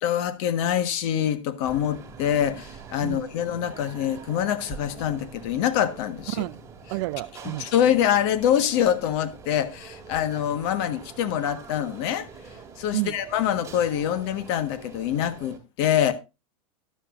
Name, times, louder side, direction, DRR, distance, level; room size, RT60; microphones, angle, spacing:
voice 1, 0.0-6.4 7.6-12.3 12.8-16.1, left 10 dB, 55° left, 1.4 m, -25 dB
sound 1, 1.6-15.6, right 5 dB, 15° right, 2.5 m, -44 dB
voice 2, 6.9-7.7 12.9-13.1, right 19 dB, 55° right, 0.5 m, -30 dB
13.0 x 11.0 x 2.5 m
supercardioid pair, 130°, 17 cm